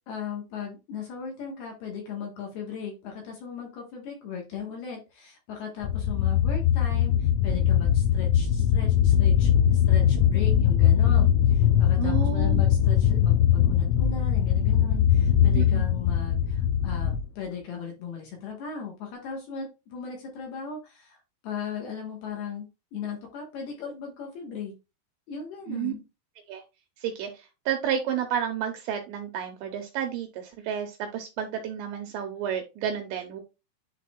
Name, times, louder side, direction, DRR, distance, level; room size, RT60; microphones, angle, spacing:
voice 1, 0.1-24.7 25.3-26.0, left 6 dB, 65° left, 1 dB, 2.8 m, -37 dB
sound 1, 5.8-17.2, left 9 dB, 85° left, 2.7 m, -21 dB
voice 2, 12.0-12.6 15.5-15.8 25.7-25.9 26.5-26.6 27.0-33.4, right 9 dB, 80° right, 4 dB, 2.6 m, -31 dB
10.0 x 4.2 x 2.3 m, 0.27 s
omnidirectional pair, 5.8 m